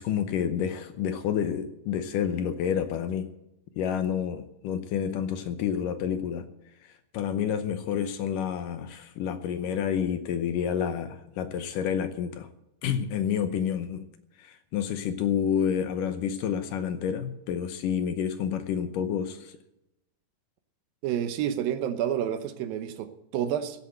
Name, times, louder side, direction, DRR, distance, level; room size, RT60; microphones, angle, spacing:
voice 1, 0.0-3.3 3.8-6.5 7.1-12.5 12.8-14.0 14.4-19.6, left 8 dB, 75° left, 2.2 m, -29 dB
voice 2, 21.0-23.8, right 10 dB, 75° right, 2.6 m, -29 dB
16.0 x 8.1 x 7.8 m
omnidirectional pair, 4.3 m